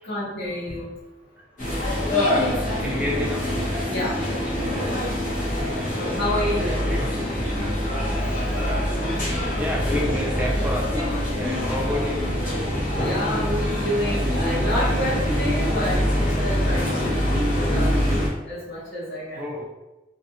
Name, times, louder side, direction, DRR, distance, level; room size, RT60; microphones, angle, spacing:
voice 1, 0.0-0.9 3.9-4.2 4.6-5.1 6.0-6.9 12.9-16.1 16.4-18.0 18.5-19.4, equal, 85° left, -11 dB, 0.9 m, -29 dB
sound 1, 1.6-18.3, equal, 45° left, 1.0 m, -24 dB
voice 2, 2.8-3.5 6.6-7.2 9.6-12.3 19.4-19.6, left 1 dB, 10° right, -2 dB, 0.4 m, -29 dB
2.4 x 2.3 x 2.8 m, 1.0 s
head